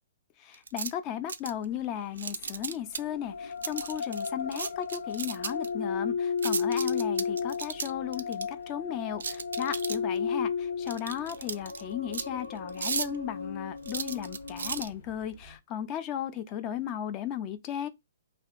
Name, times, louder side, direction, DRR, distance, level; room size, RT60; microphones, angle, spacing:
voice 1, 0.4-17.9, left 10 dB, 25° left, 0.3 m, -35 dB
sound 1, 0.5-0.9 1.3-1.6 2.2-3.0 3.6-5.7 6.4-8.4 9.2-10.2 10.9-11.8 12.1-12.3 12.7-13.2 13.9-14.9, right 6 dB, 85° right, 0.4 m, -34 dB
sound 2, 1.5-15.6, left 2 dB, 50° left, 1.2 m, -55 dB
sound 3, 3.0-14.8, left 5 dB, 90° left, 0.5 m, -34 dB
3.3 x 2.3 x 2.5 m
hypercardioid pair, 160°, 0 cm